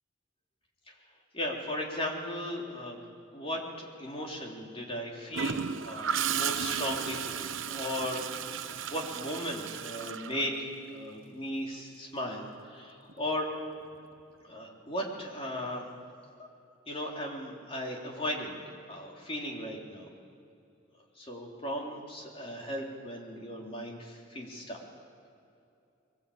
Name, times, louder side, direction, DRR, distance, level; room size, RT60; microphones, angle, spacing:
voice 1, 1.3-3.0 3.3-13.5 14.4-15.9 16.4-16.5 16.9-20.1 21.2-24.8, left 1 dB, 30° left, -1 dB, 3.5 m, -37 dB
Gurgling / Toilet flush, 5.3-11.1 13.1-13.3, right 7 dB, 80° right, 0.9 m, -34 dB
22.5 x 19.5 x 8.7 m, 2.6 s
head